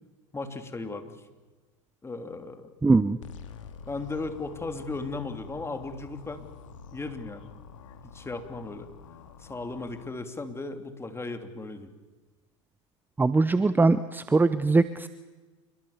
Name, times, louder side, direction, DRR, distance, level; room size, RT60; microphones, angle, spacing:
voice 1, 0.3-1.1 2.0-2.7 3.9-6.5 6.9-7.5 8.0-8.9 9.4-11.9, left 3 dB, 15° left, 7 dB, 3.2 m, -36 dB
voice 2, 2.8-3.2 13.2-15.1, right 3 dB, 10° right, 14 dB, 0.8 m, -21 dB
sound 1, 3.2-10.1, left 6 dB, 85° left, 2.3 m, -47 dB
28.0 x 22.5 x 7.2 m, 1.3 s
hypercardioid pair, 90°, 16 cm